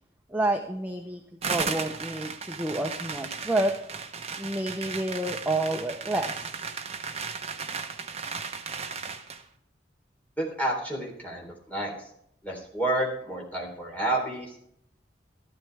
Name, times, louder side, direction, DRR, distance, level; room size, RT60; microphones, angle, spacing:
voice 1, 0.3-1.2 1.5-3.7 4.4-6.6, right 1 dB, 10° right, 2 dB, 0.8 m, -29 dB
sound 1, 1.4-9.4, right 5 dB, 35° right, 1.0 m, -35 dB
voice 2, 10.4-11.9 12.4-14.6, right 1 dB, 10° left, -2 dB, 3.8 m, -30 dB
13.5 x 12.5 x 3.5 m, 0.70 s
head